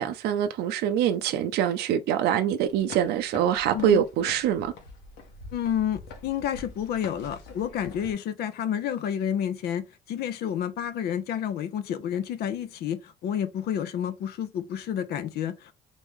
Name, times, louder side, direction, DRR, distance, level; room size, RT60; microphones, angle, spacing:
voice 1, 0.0-4.7, right 9 dB, 75° right, 0.5 m, -24 dB
sound 1, 2.7-8.1, left 3 dB, 90° left, 1.4 m, -45 dB
voice 2, 3.7-4.0 5.5-15.7, left 9 dB, 70° left, 0.7 m, -30 dB
4.1 x 3.1 x 3.5 m
cardioid pair, 110°, 17 cm